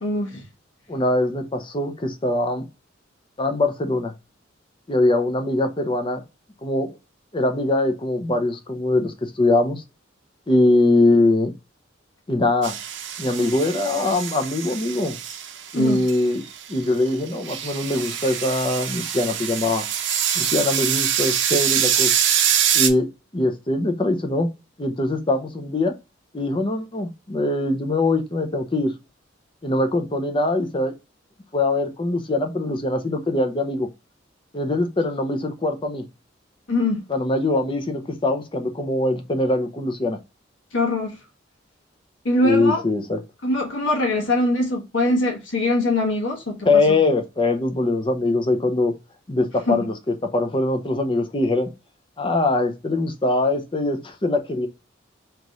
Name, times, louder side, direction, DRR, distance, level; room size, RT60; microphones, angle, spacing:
voice 1, 0.0-0.4 15.7-16.0 36.7-37.0 40.7-41.2 42.2-42.8 43.4-47.0 49.7-49.9, left 2 dB, 75° left, 1.3 m, -22 dB
voice 2, 0.9-2.7 3.4-4.1 4.9-6.2 6.6-6.9 7.3-9.8 10.5-11.5 12.3-12.8 13.2-15.2 15.7-16.4 16.7-19.9 20.3-22.1 22.7-23.1 23.3-24.5 24.8-25.9 26.3-28.9 29.6-30.9 31.5-33.9 34.5-36.0 37.1-40.2 42.4-43.2 46.6-48.9 49.3-49.9 50.2-51.7 52.2-54.7, left 2 dB, 25° left, 0.7 m, -22 dB
sound 1, 12.6-16.7 17.1-22.9, right 9 dB, 70° right, 0.7 m, -24 dB
3.4 x 3.0 x 3.8 m
head